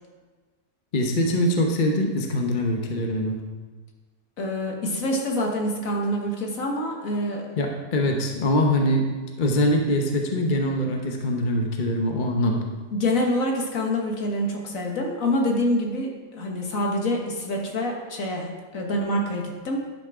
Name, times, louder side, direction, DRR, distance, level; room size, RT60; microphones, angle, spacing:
voice 1, 0.9-3.4 7.6-9.1 9.4-12.6, left 1 dB, 35° left, 2 dB, 0.9 m, -23 dB
voice 2, 4.4-7.5 12.9-19.8, left 1 dB, 60° left, 0 dB, 1.7 m, -26 dB
10.5 x 5.9 x 4.8 m, 1.3 s
omnidirectional pair, 1.7 m